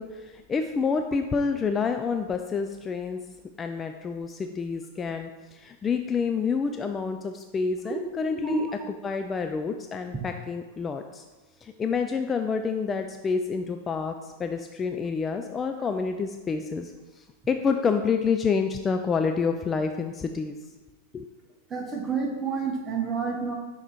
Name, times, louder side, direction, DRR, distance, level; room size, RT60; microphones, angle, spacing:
voice 1, 0.0-3.2 3.6-8.7 9.0-11.2 11.6-20.6 21.1-21.3, left 5 dB, 20° left, 5 dB, 0.3 m, -28 dB
voice 2, 21.7-23.5, right 4 dB, 20° right, 0 dB, 1.1 m, -29 dB
5.9 x 3.9 x 4.4 m, 1.2 s
figure-of-eight pair, 90°, 0 cm